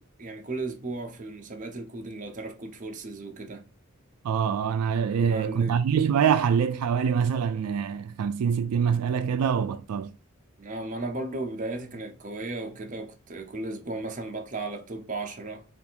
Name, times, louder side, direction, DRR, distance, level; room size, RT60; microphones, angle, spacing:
voice 1, 0.0-3.6 5.1-5.8 10.6-15.6, right 2 dB, 35° right, 0.7 m, -35 dB
voice 2, 4.2-10.1, right 7 dB, 85° right, 0.3 m, -25 dB
3.3 x 2.5 x 4.3 m
head